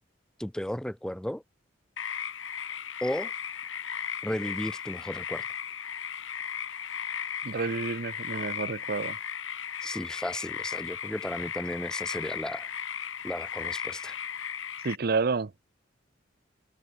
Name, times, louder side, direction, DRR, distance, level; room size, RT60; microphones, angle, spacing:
voice 1, 0.4-1.4 3.0-3.3 4.2-5.4 9.8-12.7 13.2-14.2, equal, 5° left, 0.4 m, -34 dB
sound 1, 2.0-15.0, left 8 dB, 75° left, 2.2 m, -36 dB
voice 2, 7.4-9.2 14.8-15.6, right 4 dB, 50° right, 0.6 m, -30 dB
head